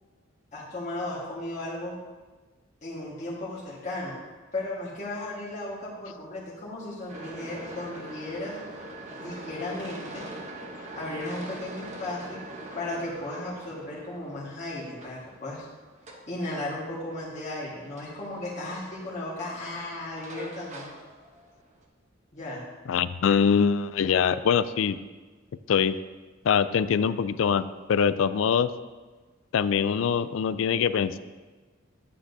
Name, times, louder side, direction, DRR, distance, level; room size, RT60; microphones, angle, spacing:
voice 1, 0.5-2.0 2.8-4.2 4.5-8.6 9.2-10.2 10.9-12.4 12.7-15.7 16.3-20.9 22.3-22.6, left 1 dB, 35° left, -7 dB, 1.6 m, -35 dB
sound 1, 7.1-21.8, right 1 dB, 35° right, 1.0 m, -43 dB
voice 2, 22.9-25.0 25.7-25.9 26.4-28.7 29.5-31.2, left 7 dB, 70° left, 14 dB, 0.4 m, -23 dB
9.9 x 8.6 x 2.7 m, 1.3 s
head